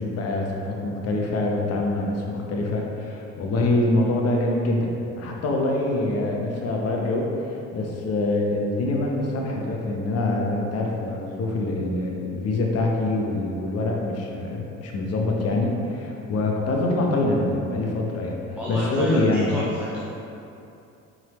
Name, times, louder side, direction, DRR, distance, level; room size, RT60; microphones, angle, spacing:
voice 1, 0.0-18.4 18.7-19.5, left 2 dB, 55° left, 0 dB, 0.8 m, -25 dB
voice 2, 18.5-20.0, equal, 5° right, -7 dB, 0.6 m, -31 dB
4.3 x 3.9 x 3.0 m, 2.7 s
supercardioid pair, 85°, 30 cm